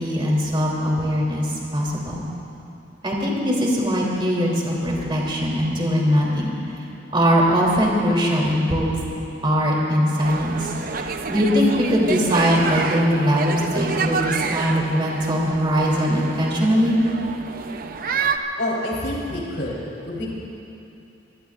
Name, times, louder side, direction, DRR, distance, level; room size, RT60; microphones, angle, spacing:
voice 1, 0.0-2.2 3.0-6.5 7.1-9.0 9.4-17.0, equal, 25° right, -3 dB, 3.2 m, -21 dB
sound 1, 10.2-18.4, right 5 dB, 50° right, 0.7 m, -28 dB
voice 2, 18.6-20.3, left 1 dB, 80° left, -4 dB, 3.8 m, -27 dB
25.0 x 19.5 x 2.5 m, 2.8 s
head